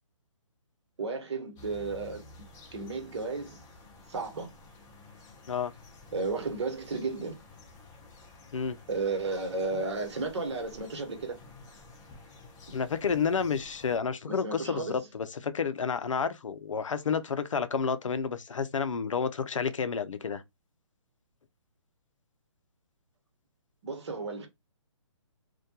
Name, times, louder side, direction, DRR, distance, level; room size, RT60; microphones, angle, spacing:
voice 1, 1.0-2.2 2.7-3.6 4.1-4.5 6.1-7.4 8.9-11.4 14.3-15.1 23.8-24.5, right 3 dB, 60° right, 0.9 m, -33 dB
sound 1, 1.6-14.0, left 2 dB, 15° left, 0.4 m, -52 dB
voice 2, 12.7-20.4, left 6 dB, 80° left, 0.4 m, -30 dB
2.2 x 2.2 x 2.7 m
figure-of-eight pair, 140°, 16 cm